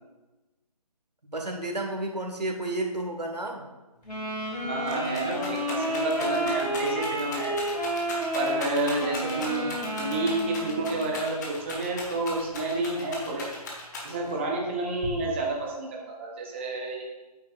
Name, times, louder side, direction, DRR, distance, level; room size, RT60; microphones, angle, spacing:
voice 1, 1.3-3.6, right 2 dB, 85° right, 2 dB, 1.5 m, -31 dB
Wind instrument woodwind instrument, 4.1-11.2, equal, 85° left, 2.2 m, -31 dB
Rattle, 4.1-4.2 4.5-14.4 15.0-15.6, left 2 dB, 25° left, 1.3 m, -38 dB
voice 2, 4.6-7.6 8.3-13.5 14.0-17.0, right 2 dB, 20° right, -1 dB, 0.7 m, -30 dB
8.6 x 7.7 x 2.4 m, 1.1 s
figure-of-eight pair, 150°, 20 cm